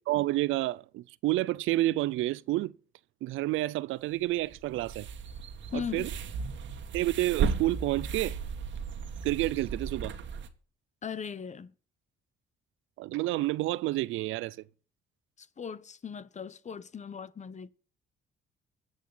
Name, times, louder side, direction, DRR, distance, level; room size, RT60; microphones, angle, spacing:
voice 1, 0.1-2.7 3.2-5.1 5.7-6.1 6.9-8.4 9.2-10.2 13.0-14.6, right 17 dB, 90° right, 0.5 m, -29 dB
sound 1, 4.3-10.5, right 6 dB, 70° right, 1.6 m, -35 dB
voice 2, 5.7-6.1 11.0-11.7 15.4-17.7, left 7 dB, 35° left, 0.9 m, -38 dB
24.0 x 8.1 x 4.0 m
cardioid pair, 90°, 20 cm